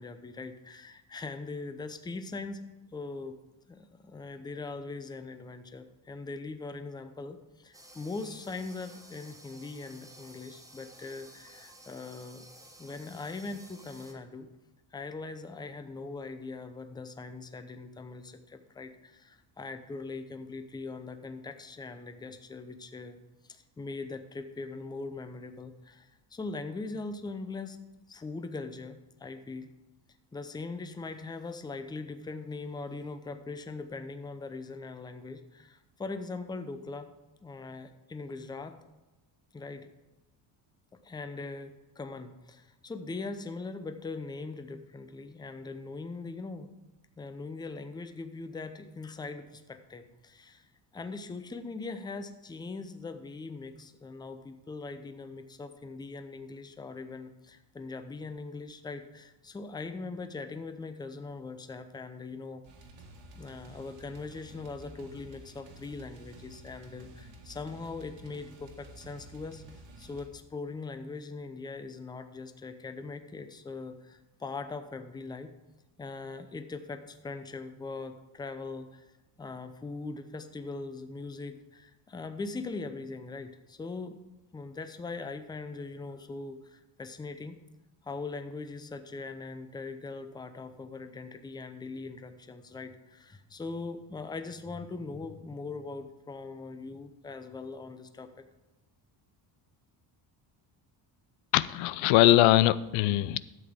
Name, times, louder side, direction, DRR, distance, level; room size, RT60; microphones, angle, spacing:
voice 1, 0.0-3.3 3.7-12.5 12.8-14.5 14.9-23.2 23.4-27.8 28.1-29.7 30.3-37.1 37.4-38.8 39.5-39.9 41.0-46.8 47.2-62.6 63.3-69.6 70.0-75.5 76.0-79.1 79.4-84.2 84.5-87.6 88.0-98.4, left 3 dB, 10° left, 9 dB, 0.5 m, -41 dB
sound 1, 7.7-14.1, right 1 dB, 5° right, 1.1 m, -53 dB
sound 2, 62.6-70.3, right 1 dB, 70° right, 2.0 m, -51 dB
voice 2, 101.5-103.4, left 15 dB, 90° left, 17 dB, 0.5 m, -22 dB
12.0 x 7.7 x 3.6 m, 1.1 s
cardioid pair, 135°, 46 cm